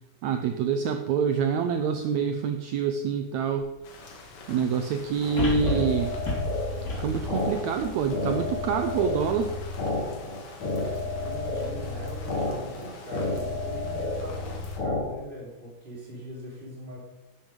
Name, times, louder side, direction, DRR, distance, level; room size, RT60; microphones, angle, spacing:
voice 1, 0.2-3.7 4.5-6.1 6.8-9.5, right 6 dB, 85° right, 7 dB, 1.6 m, -26 dB
sound 1, 3.6-3.7 5.4-8.7 9.2-9.3, left 1 dB, 30° left, 2.2 m, -31 dB
sound 2, 3.8-14.8, left 3 dB, 80° left, 3.3 m, -47 dB
sound 3, 5.2-15.0, left 2 dB, 55° left, 3.4 m, -31 dB
voice 2, 11.0-17.0, equal, 15° right, -5 dB, 3.6 m, -41 dB
11.0 x 7.3 x 5.2 m, 1.0 s
omnidirectional pair, 4.0 m